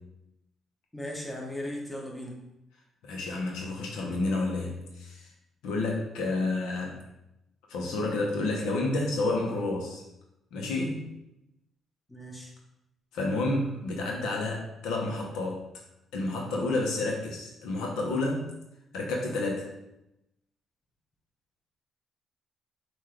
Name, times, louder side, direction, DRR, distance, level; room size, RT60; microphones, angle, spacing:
voice 1, 0.9-2.4 12.1-12.5, left 1 dB, 10° left, -1 dB, 1.0 m, -37 dB
voice 2, 3.0-5.3 5.6-7.0 7.7-10.0 10.5-11.0 13.1-15.6 16.1-18.5 18.9-19.7, left 2 dB, 90° left, 0 dB, 1.0 m, -30 dB
5.7 x 2.6 x 3.2 m, 0.87 s
cardioid pair, 90°, 0 cm